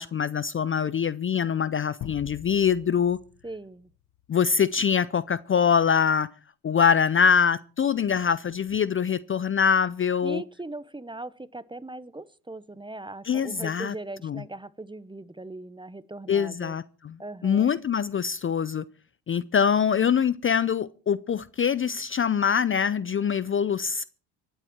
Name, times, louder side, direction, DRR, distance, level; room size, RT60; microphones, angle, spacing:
voice 1, 0.0-3.2 4.3-6.3 6.6-10.4 13.2-13.9 14.2-14.4 16.3-17.2 17.4-18.8 19.3-24.0, left 7 dB, 30° left, 0.6 m, -24 dB
sound 1, 2.0-4.6, left 12 dB, 60° left, 1.2 m, -44 dB
voice 2, 3.4-3.9 10.2-16.8 17.2-17.7, right 2 dB, 10° right, 0.7 m, -39 dB
24.0 x 8.1 x 4.5 m
hypercardioid pair, 65°, 45 cm